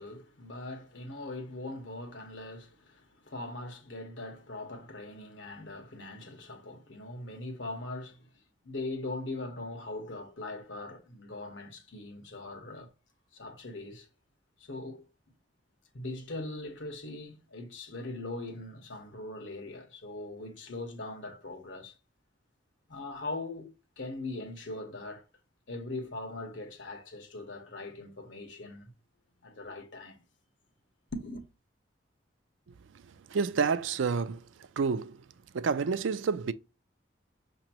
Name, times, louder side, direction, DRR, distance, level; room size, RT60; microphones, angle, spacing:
voice 1, 0.0-8.3 8.6-12.9 13.3-14.1 14.6-15.0 15.9-21.9 22.9-25.2 25.7-28.9 29.4-30.2 31.1-31.4, left 2 dB, 75° left, 1.2 m, -41 dB
voice 2, 32.7-35.2 35.5-36.5, right 5 dB, 85° right, 0.4 m, -30 dB
6.1 x 3.0 x 2.9 m
head